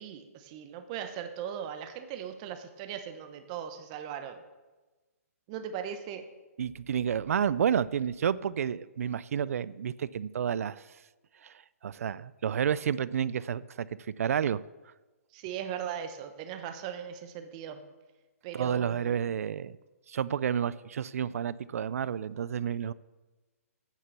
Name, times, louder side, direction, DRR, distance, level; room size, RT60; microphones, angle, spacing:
voice 1, 0.0-4.4 5.5-6.3 15.3-17.8 18.4-19.2, right 9 dB, 25° right, 9 dB, 0.8 m, -38 dB
voice 2, 6.6-11.0 11.4-14.6 18.5-19.8 20.1-22.9, right 8 dB, 65° right, 19 dB, 0.4 m, -30 dB
9.3 x 6.7 x 6.8 m, 1.2 s
hypercardioid pair, 160°, 8 cm